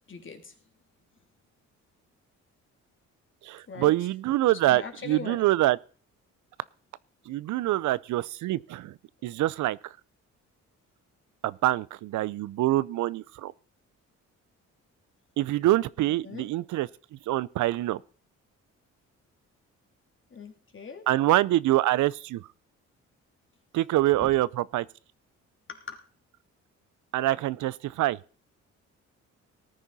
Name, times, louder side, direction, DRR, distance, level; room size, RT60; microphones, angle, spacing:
voice 1, 0.1-0.5 3.7-3.9 4.7-5.5 16.0-16.5 20.3-21.1 24.2-24.3 25.7-26.0, left 5 dB, 40° left, 3.0 m, -41 dB
voice 2, 3.4-5.8 7.3-8.9 9.2-9.8 11.4-13.5 15.4-16.9 17.3-18.0 21.1-22.5 23.7-24.9 27.1-28.2, right 15 dB, 75° right, 0.6 m, -25 dB
18.5 x 9.8 x 4.1 m
cardioid pair, 90°, 30 cm